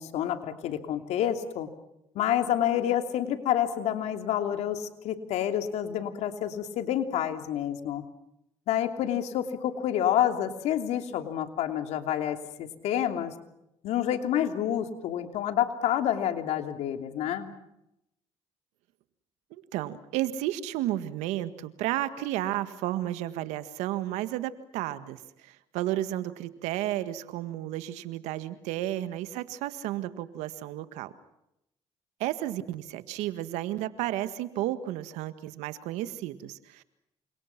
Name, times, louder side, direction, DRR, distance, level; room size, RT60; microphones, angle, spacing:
voice 1, 0.0-1.7 2.1-8.0 8.7-13.3 13.8-17.5, left 10 dB, 75° left, 7 dB, 3.0 m, -28 dB
voice 2, 19.5-31.1 32.2-36.8, right 14 dB, 90° right, 12 dB, 1.7 m, -32 dB
29.0 x 26.5 x 6.0 m, 0.83 s
supercardioid pair, 80°, 11 cm